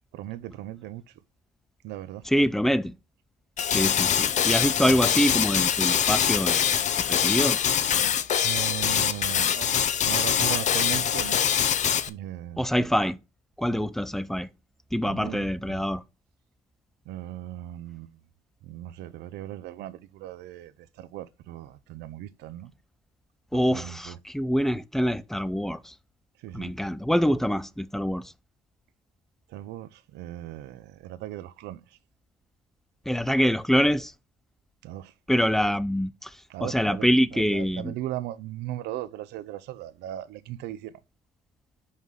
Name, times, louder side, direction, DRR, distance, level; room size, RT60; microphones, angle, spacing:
voice 1, 0.1-1.0 1.8-2.2 4.8-4.9 8.4-11.4 12.1-12.6 15.0-15.8 17.1-18.2 18.6-22.7 23.5-24.2 26.4-26.7 29.5-31.8 34.8-35.1 36.5-40.9, right 13 dB, 85° right, 0.6 m, -37 dB
voice 2, 2.2-2.9 3.7-6.7 7.1-7.6 12.6-13.2 13.6-14.5 14.9-16.0 23.5-25.9 26.5-28.3 33.1-34.1 35.3-36.3 36.6-38.0, equal, ahead, 0.4 m, -25 dB
sound 1, 3.6-12.1, left 9 dB, 45° left, 0.6 m, -24 dB
5.6 x 4.8 x 5.6 m
cardioid pair, 110°, 17 cm